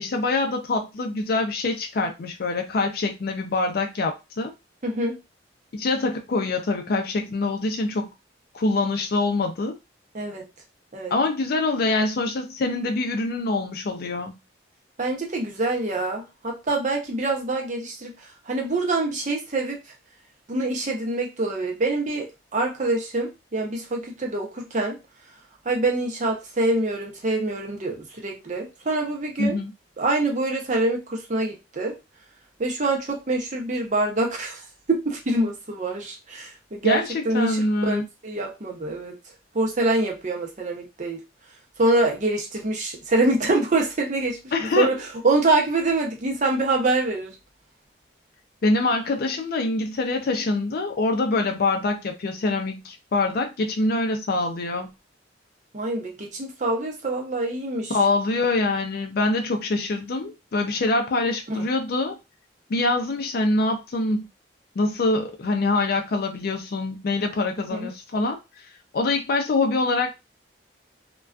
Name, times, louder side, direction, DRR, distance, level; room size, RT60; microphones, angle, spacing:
voice 1, 0.0-4.5 5.7-8.1 8.5-9.8 11.1-14.4 29.4-29.7 36.8-37.1 37.3-38.0 44.5-45.0 48.6-54.9 57.9-62.2 62.7-64.3 64.8-68.4 68.9-70.1, left 2 dB, 55° left, 0.4 m, -24 dB
voice 2, 4.8-5.2 10.1-10.5 10.9-11.1 15.0-19.8 20.5-22.3 22.5-25.0 25.6-29.6 30.0-32.0 32.6-39.1 39.5-41.2 41.8-44.4 44.8-44.9 45.2-47.4 55.7-58.0 61.5-61.7 67.7-67.9, right 2 dB, 40° right, 0.6 m, -25 dB
2.3 x 2.2 x 2.4 m
head